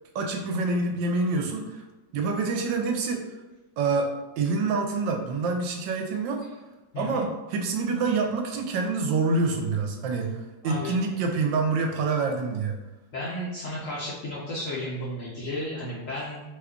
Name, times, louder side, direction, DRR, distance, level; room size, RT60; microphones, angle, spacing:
voice 1, 0.1-1.8 2.1-3.2 3.8-4.1 4.4-6.4 7.0-10.4 10.6-12.8, right 3 dB, 80° right, 2 dB, 1.2 m, -26 dB
voice 2, 10.6-11.0 13.1-16.4, left 1 dB, 65° left, -7 dB, 0.8 m, -33 dB
3.1 x 2.2 x 3.6 m, 1.1 s
omnidirectional pair, 2.0 m